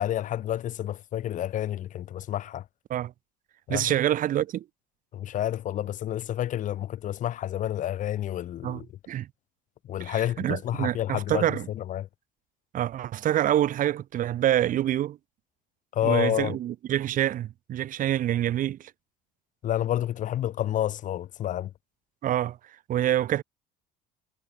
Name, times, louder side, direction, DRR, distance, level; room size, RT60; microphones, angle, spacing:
voice 1, 0.0-2.6 3.7-3.9 5.1-8.9 9.9-11.4 11.8-12.1 15.9-16.5 19.6-21.7, left 12 dB, 50° left, 0.9 m, -29 dB
voice 2, 3.7-4.6 8.6-8.8 9.1-9.3 10.0-11.7 12.7-15.2 16.0-18.9 22.2-22.6 22.9-23.4, right 12 dB, 55° right, 1.7 m, -26 dB
supercardioid pair, 85°, 16 cm